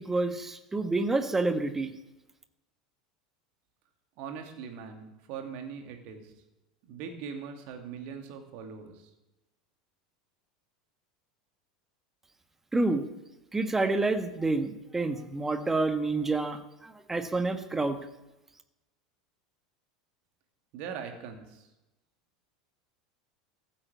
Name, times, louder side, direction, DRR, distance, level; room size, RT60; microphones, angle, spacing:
voice 1, 0.0-1.9 12.7-13.1 13.5-18.0, right 3 dB, 10° right, 9 dB, 1.5 m, -28 dB
voice 2, 4.2-6.3 6.8-9.1 20.7-21.7, right 6 dB, 50° right, 5 dB, 2.5 m, -41 dB
15.0 x 8.7 x 8.5 m, 0.98 s
figure-of-eight pair, 75°, 3 cm